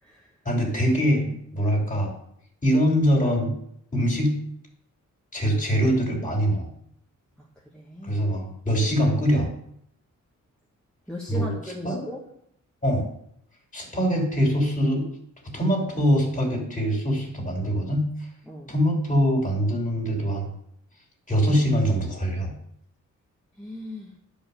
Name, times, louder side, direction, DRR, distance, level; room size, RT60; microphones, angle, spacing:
voice 1, 0.4-2.1 2.6-3.5 3.9-4.3 5.3-6.7 8.0-9.5 11.3-11.5 11.8-12.0 12.8-13.1 13.7-15.1 15.5-18.1 18.7-20.5 21.3-22.5, equal, 25° left, 1 dB, 2.9 m, -23 dB
voice 2, 7.7-8.2 11.1-12.2 18.5-18.7 23.6-24.1, equal, 5° left, -4 dB, 1.3 m, -37 dB
11.0 x 5.1 x 6.8 m, 0.71 s
wide cardioid pair, 135°, 32 cm